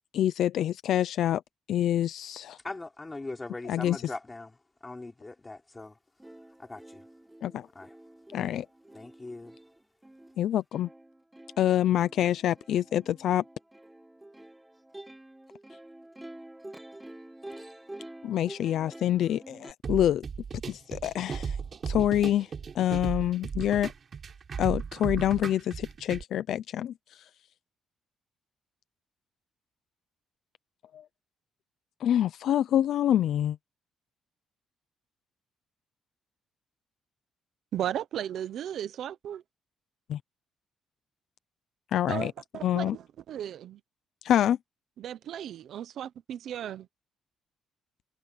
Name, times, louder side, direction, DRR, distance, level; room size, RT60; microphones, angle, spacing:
voice 1, 0.1-1.4 1.7-2.6 3.7-4.0 7.4-7.7 8.3-8.7 10.4-10.9 11.6-13.4 18.2-20.2 20.7-21.6 21.9-22.5 22.7-23.9 24.6-26.9 30.9-31.0 32.0-33.6 40.1-40.2 41.9-42.3 42.6-43.0 44.2-44.6, left 11 dB, 60° left, 0.6 m, -26 dB
voice 2, 2.6-4.6 4.8-6.0 6.6-7.0 7.7-7.9 8.9-9.6, left 2 dB, 15° left, 5.0 m, -40 dB
Plucked string instrument, 5.8-5.9 6.2-19.7, right 1 dB, 5° right, 1.7 m, -48 dB
sound 1, 19.8-26.2, right 6 dB, 35° right, 3.6 m, -36 dB
voice 3, 37.7-39.4 42.1-43.8 45.0-46.9, right 10 dB, 60° right, 0.9 m, -35 dB
cardioid pair, 170°, 0 cm